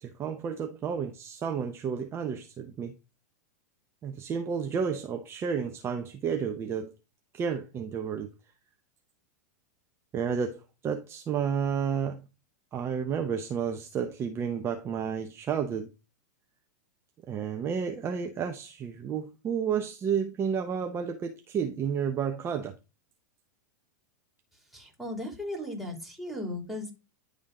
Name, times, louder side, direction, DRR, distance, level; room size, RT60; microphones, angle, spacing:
voice 1, 0.0-2.9 4.0-6.9 7.3-8.3 10.1-12.3 12.7-15.9 17.3-22.7, right 7 dB, 30° right, 0.8 m, -31 dB
voice 2, 24.7-26.9, left 1 dB, ahead, 2.8 m, -36 dB
10.5 x 3.6 x 3.8 m
hypercardioid pair, 115°, 9 cm